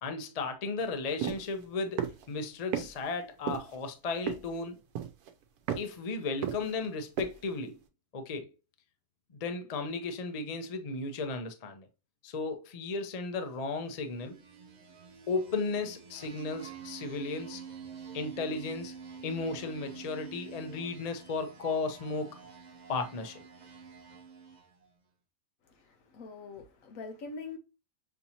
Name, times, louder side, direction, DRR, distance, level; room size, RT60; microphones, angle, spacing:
voice 1, 0.0-4.8 5.8-7.8 8.1-8.5 9.3-11.9 12.2-14.4 15.3-17.6 18.1-18.9 19.2-22.4 22.9-23.4, left 3 dB, 50° left, 0.4 m, -35 dB
sound 1, 1.2-1.4 2.0-2.2 2.7-2.9 3.5-3.8 4.3-4.6 4.9-5.3 5.7-5.9 6.4-6.9 7.2-7.3, right 9 dB, 80° right, 1.1 m, -33 dB
sound 2, 14.0-24.8, right 6 dB, 45° right, 0.6 m, -48 dB
voice 2, 25.7-27.6, left 4 dB, 65° left, 1.1 m, -44 dB
6.2 x 2.8 x 2.8 m
omnidirectional pair, 1.6 m